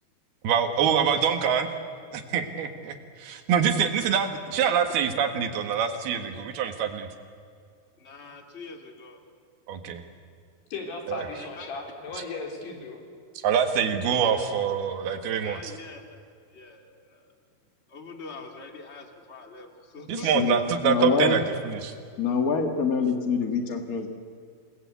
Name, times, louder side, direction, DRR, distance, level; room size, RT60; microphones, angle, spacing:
voice 1, 0.4-1.7 2.1-7.1 9.7-10.0 11.1-11.2 13.4-15.7 20.1-21.9, right 7 dB, 75° right, 7 dB, 3.5 m, -25 dB
voice 2, 8.0-9.2 11.4-11.7 14.0-14.4 15.4-16.0 16.5-17.2 17.9-20.6, left 4 dB, 25° left, 4 dB, 1.6 m, -44 dB
voice 3, 10.7-13.0, left 3 dB, 85° left, 2 dB, 5.7 m, -36 dB
voice 4, 20.1-20.5 20.8-21.4 22.2-24.1, left 5 dB, 65° left, 5 dB, 0.8 m, -25 dB
28.0 x 20.0 x 8.4 m, 2.3 s
omnidirectional pair, 4.6 m